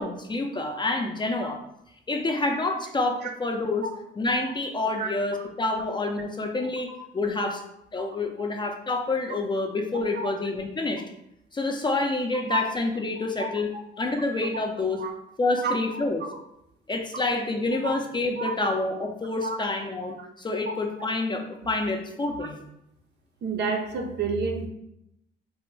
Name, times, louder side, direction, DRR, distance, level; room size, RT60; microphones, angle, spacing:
voice 1, 0.0-1.6 2.1-3.9 4.2-7.6 7.9-11.0 11.5-13.7 14.0-15.0 15.4-16.3 16.9-22.6, left 2 dB, 25° left, 3 dB, 0.4 m, -28 dB
voice 2, 23.4-24.7, right 4 dB, 60° right, 2 dB, 0.6 m, -29 dB
3.4 x 2.1 x 3.2 m, 0.80 s
cardioid pair, 90°, 20 cm